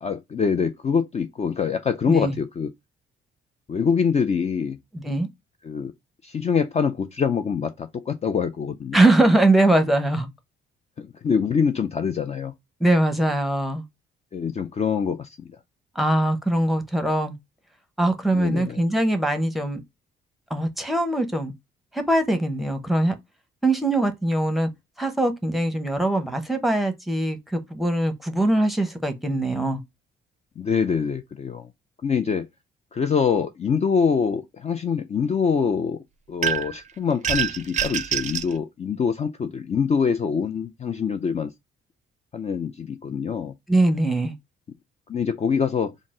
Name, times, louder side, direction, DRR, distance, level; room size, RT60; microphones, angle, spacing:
voice 1, 0.0-2.7 3.7-4.8 5.6-5.9 6.2-9.0 11.0-12.5 14.3-15.3 18.3-18.8 30.6-31.7 32.0-32.5 32.9-36.0 36.3-41.5 42.3-43.5 45.1-45.9, left 6 dB, 35° left, 0.4 m, -24 dB
voice 2, 4.9-5.3 8.9-10.3 12.8-13.8 15.9-17.3 18.0-19.8 20.5-21.5 21.9-23.1 23.6-24.7 25.0-29.8 43.7-44.3, right 1 dB, ahead, 0.8 m, -22 dB
sound 1, 36.4-36.8 37.2-38.5, right 8 dB, 40° right, 0.4 m, -25 dB
4.0 x 2.1 x 3.6 m
cardioid pair, 90°, 20 cm